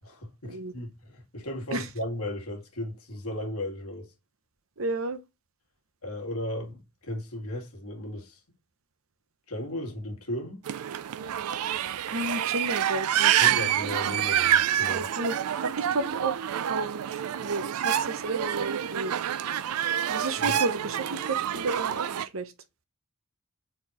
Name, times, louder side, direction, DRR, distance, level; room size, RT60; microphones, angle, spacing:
voice 1, 0.0-4.1 6.0-8.4 9.5-10.6 13.4-15.1 20.4-20.6, left 1 dB, 80° left, 2.0 m, -36 dB
voice 2, 4.8-5.2 12.1-13.6 14.8-19.2 20.1-22.5, right 2 dB, 65° right, 0.8 m, -32 dB
sound 1, 10.6-22.3, right 10 dB, 90° right, 0.4 m, -27 dB
4.4 x 4.4 x 4.9 m
head